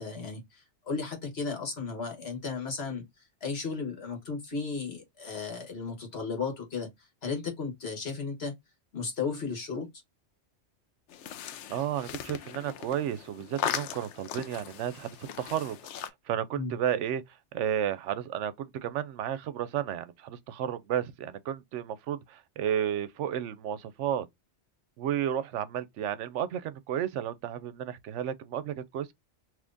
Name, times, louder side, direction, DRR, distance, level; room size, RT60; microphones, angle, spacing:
voice 1, 0.0-8.5 8.9-9.9 16.5-16.7, left 4 dB, 60° left, 1.6 m, -35 dB
sound 1, 11.1-16.1, left 10 dB, 75° left, 0.9 m, -38 dB
voice 2, 11.4-17.2 17.5-24.3 25.0-29.1, right 10 dB, 85° right, 0.9 m, -32 dB
3.5 x 3.0 x 2.5 m
omnidirectional pair, 1.2 m